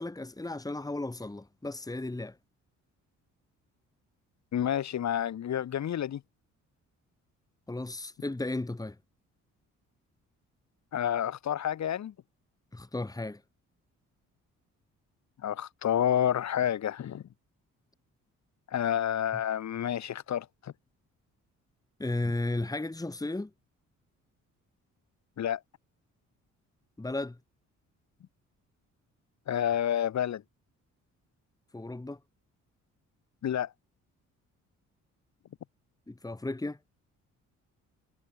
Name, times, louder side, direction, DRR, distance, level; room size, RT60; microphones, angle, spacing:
voice 1, 0.0-2.4 7.7-9.0 12.7-13.4 22.0-23.5 27.0-27.4 31.7-32.2 36.1-36.8, left 2 dB, 10° left, 2.8 m, -34 dB
voice 2, 4.5-6.2 10.9-12.1 15.4-17.2 18.7-20.7 25.4-25.6 29.5-30.4 33.4-33.7, left 10 dB, 65° left, 5.3 m, -29 dB
cardioid pair, 90°, 30 cm